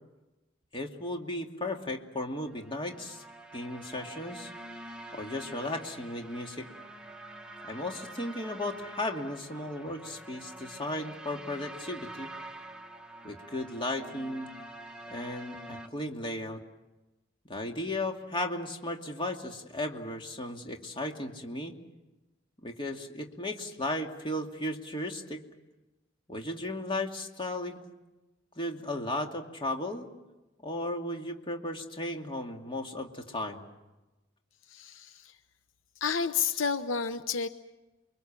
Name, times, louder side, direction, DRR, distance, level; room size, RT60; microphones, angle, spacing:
voice 1, 0.7-3.2 3.5-4.5 5.1-6.7 7.6-12.3 13.2-14.5 15.1-16.6 17.5-21.8 22.6-25.4 26.3-27.8 28.6-30.1 30.6-33.6, left 1 dB, 25° left, 2 dB, 2.4 m, -35 dB
sound 1, 2.4-15.9, right 1 dB, 5° right, 1.7 m, -46 dB
voice 2, 34.7-35.4 36.0-37.5, left 6 dB, 80° left, 11 dB, 0.9 m, -31 dB
29.0 x 23.5 x 7.5 m, 1.1 s
head